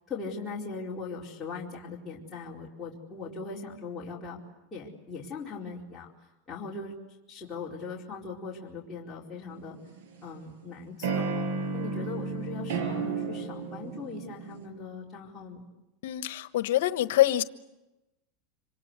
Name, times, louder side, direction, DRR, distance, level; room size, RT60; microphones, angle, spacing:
voice 1, 0.1-4.4 4.7-6.1 6.5-6.9 7.3-9.8 10.2-11.4 11.7-15.7, left 4 dB, 10° left, -7 dB, 4.6 m, -39 dB
sound 1, 9.5-10.4 11.0-14.7, right 4 dB, 80° right, 6.2 m, -33 dB
voice 2, 16.0-17.4, left 14 dB, 75° left, 12 dB, 1.2 m, -25 dB
27.0 x 26.5 x 8.2 m, 0.99 s
supercardioid pair, 140°, 0 cm